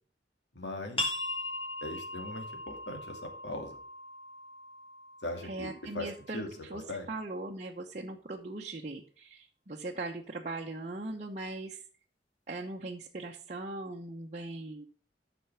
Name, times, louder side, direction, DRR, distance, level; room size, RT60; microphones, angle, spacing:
voice 1, 0.5-1.2 1.8-3.8 5.2-7.1, left 1 dB, 75° left, 4 dB, 2.5 m, -40 dB
sound 1, 1.0-6.3, left 1 dB, 35° left, 2.6 m, -39 dB
voice 2, 5.4-6.4 6.7-6.8 7.1-11.8 12.5-14.9, right 2 dB, 40° right, -1 dB, 0.9 m, -39 dB
9.1 x 6.1 x 5.6 m, 0.43 s
head